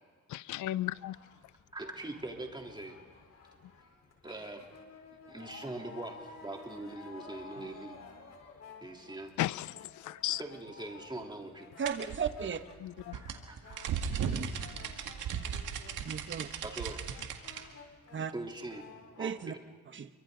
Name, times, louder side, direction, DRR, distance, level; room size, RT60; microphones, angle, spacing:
voice 1, 0.3-1.2 9.4-10.4 12.8-13.2, left 15 dB, 75° left, 20 dB, 0.5 m, -35 dB
sound 1, 0.8-19.4, left 4 dB, 55° left, 4.4 m, -53 dB
voice 2, 1.7-3.0 4.2-4.7 5.3-8.0 8.8-9.3 10.2-11.7 13.1-13.8 14.8-15.1 15.4-16.0 16.6-17.2 17.5-17.8 18.3-18.9 19.2-19.6, right 2 dB, 15° right, 1 dB, 3.4 m, -43 dB
voice 3, 11.8-12.6 14.1-14.5 16.0-16.5 18.1-18.3 19.2-19.5 19.9-20.1, right 7 dB, 40° right, 10 dB, 1.2 m, -35 dB
sound 2, 11.9-17.6, right 7 dB, 80° right, 2.0 m, -36 dB
29.0 x 24.0 x 4.0 m, 1.5 s
cardioid pair, 90°, 30 cm